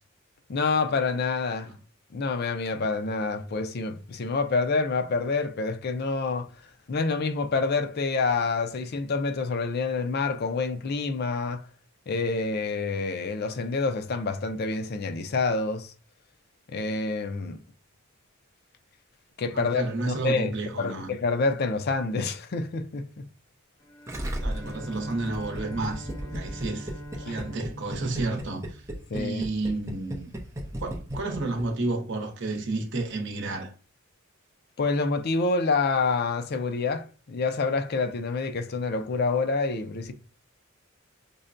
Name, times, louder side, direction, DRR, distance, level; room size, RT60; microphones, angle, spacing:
voice 1, 0.5-1.7 2.1-6.5 6.9-11.7 12.1-15.9 16.7-17.6 19.4-23.2 26.3-26.4 27.2-27.4 29.1-29.5 34.8-40.1, left 4 dB, 50° left, 0.4 m, -27 dB
voice 2, 19.5-21.1 24.4-28.8 29.1-30.3 30.8-33.7, right 2 dB, 60° right, 0.8 m, -31 dB
Bowed string instrument, 23.8-29.3, equal, 15° left, 0.9 m, -43 dB
Gurgling, 24.1-31.6 31.9-32.0, equal, 15° right, 0.6 m, -35 dB
5.3 x 2.2 x 2.5 m
head